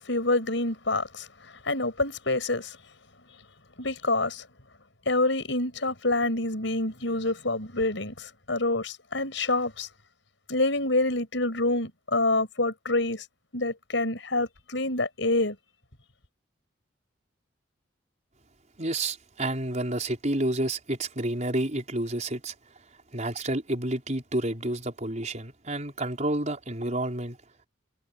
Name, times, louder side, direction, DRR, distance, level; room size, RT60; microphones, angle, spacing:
voice 1, 0.0-2.8 3.8-4.4 5.1-9.9 10.5-13.2 13.5-15.6, left 2 dB, 75° left, 6.0 m, -27 dB
voice 2, 18.8-22.5 23.1-27.4, right 1 dB, 40° right, 5.3 m, -29 dB
head